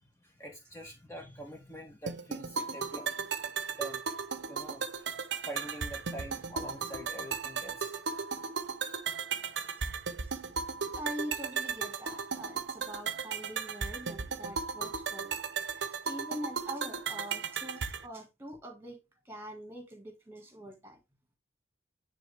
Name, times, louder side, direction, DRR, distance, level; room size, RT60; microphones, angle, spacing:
voice 1, 0.0-3.4 3.7-4.2 4.5-5.1 5.4-7.9 8.8-9.0, right 1 dB, 15° left, 1.2 m, -45 dB
sound 1, 2.1-18.1, right 5 dB, 70° right, 0.7 m, -36 dB
voice 2, 10.9-15.4 15.7-21.0, equal, 10° right, 1.9 m, -44 dB
9.3 x 4.0 x 3.4 m
head